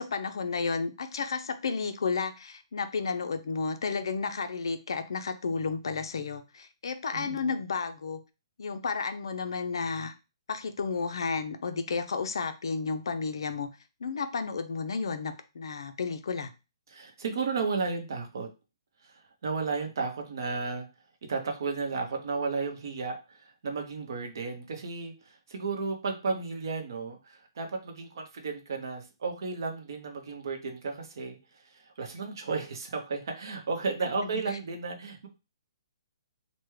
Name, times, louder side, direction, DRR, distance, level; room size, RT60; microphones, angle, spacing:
voice 1, 0.0-8.2 8.6-10.1 10.5-13.7 14.0-16.5 34.0-34.4, left 4 dB, 65° left, 9 dB, 0.4 m, -32 dB
voice 2, 7.1-7.5 16.9-18.5 19.0-20.9 21.3-31.4 31.6-35.3, right 4 dB, 50° right, 4 dB, 0.7 m, -33 dB
3.4 x 2.1 x 3.1 m, 0.29 s
hypercardioid pair, 175°, 3 cm